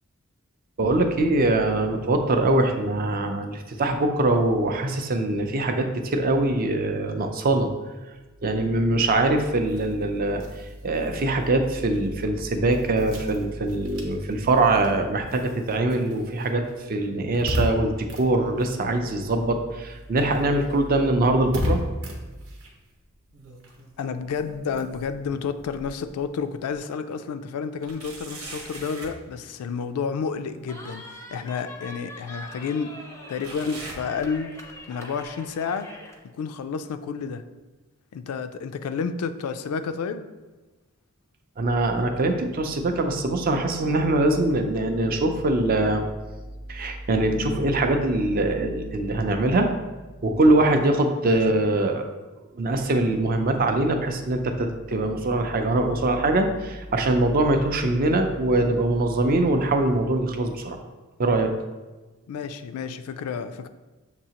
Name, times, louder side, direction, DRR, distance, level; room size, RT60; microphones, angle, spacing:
voice 1, 0.8-7.7 8.4-10.4 10.8-16.6 16.9-21.8 41.6-46.0 46.7-49.7 50.2-52.0 52.5-60.8 61.2-61.5, right 2 dB, 40° right, 5 dB, 0.4 m, -23 dB
sound 1, 9.6-19.5 19.8-26.7, left 1 dB, 65° right, 0.8 m, -36 dB
sound 2, 23.0-24.0 24.3-26.2 26.7-26.8 27.8-29.2 30.9-31.0 31.9-32.0 33.4-34.8 35.1-35.5 36.2-36.3 37.1-37.2, right 2 dB, 90° right, 1.1 m, -43 dB
voice 2, 24.0-32.9 33.3-34.6 34.9-35.9 36.4-37.4 38.1-40.3 51.3-51.4 62.3-63.7, left 6 dB, 85° left, 10 dB, 0.3 m, -30 dB
Cheering, 30.7-36.2, left 1 dB, 15° left, 0.4 m, -43 dB
6.7 x 2.8 x 2.9 m, 1.2 s
head